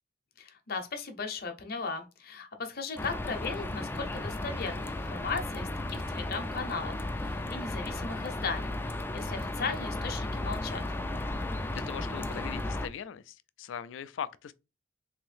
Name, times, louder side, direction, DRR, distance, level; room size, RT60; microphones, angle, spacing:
voice 1, 0.4-10.8, left 4 dB, 55° left, 0.8 m, -37 dB
sound 1, 3.0-12.9, left 2 dB, 10° left, 0.3 m, -35 dB
voice 2, 11.7-14.5, left 8 dB, 85° left, 0.3 m, -40 dB
3.6 x 2.6 x 3.3 m
head